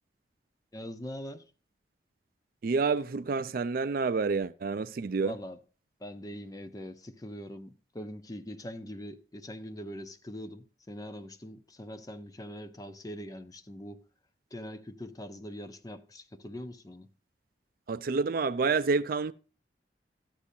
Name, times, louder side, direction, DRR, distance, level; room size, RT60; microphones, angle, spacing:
voice 1, 0.7-1.5 5.2-5.6 6.0-14.0 14.5-17.1, equal, 20° left, 0.7 m, -42 dB
voice 2, 2.6-5.3 17.9-19.3, right 4 dB, 55° right, 0.4 m, -28 dB
13.0 x 9.8 x 2.7 m
head